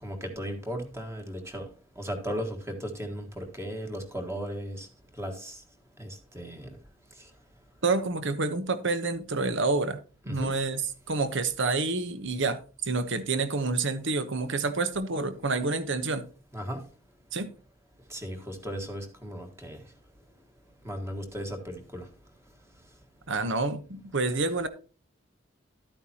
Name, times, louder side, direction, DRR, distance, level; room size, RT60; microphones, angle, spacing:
voice 1, 0.0-1.7 2.0-4.9 5.2-5.6 6.0-6.7 10.2-10.5 16.5-16.8 18.1-19.8 20.8-22.1, equal, 15° right, 1.5 m, -36 dB
voice 2, 7.8-10.0 10.3-10.8 11.1-16.2 17.3-17.5 23.3-24.7, right 3 dB, 60° right, 1.1 m, -28 dB
12.0 x 9.0 x 2.9 m
head